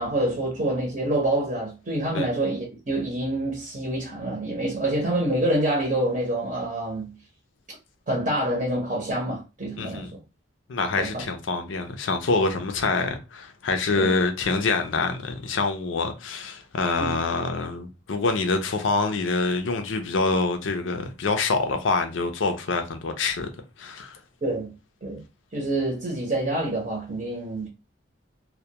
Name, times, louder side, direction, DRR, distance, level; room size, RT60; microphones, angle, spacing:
voice 1, 0.0-7.1 8.1-10.1 11.0-11.2 13.9-14.1 17.0-17.2 24.4-24.7 25.0-25.2 25.5-27.7, right 1 dB, 40° right, 0.7 m, -27 dB
voice 2, 9.8-10.1 10.7-23.5 23.8-24.2, left 3 dB, 80° left, 0.5 m, -26 dB
2.2 x 2.2 x 2.7 m
head